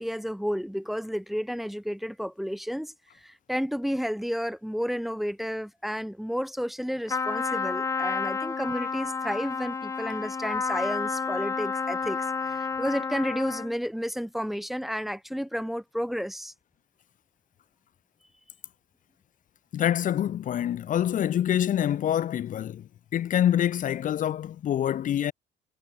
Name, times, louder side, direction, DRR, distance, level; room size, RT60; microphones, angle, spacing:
voice 1, 0.0-2.9 3.2-16.5, equal, ahead, 1.3 m, -31 dB
Trumpet, 7.1-13.8, left 5 dB, 20° left, 0.4 m, -30 dB
voice 2, 19.7-22.8 23.1-25.3, left 10 dB, 50° left, 0.9 m, -26 dB
cardioid pair, 110°, 17 cm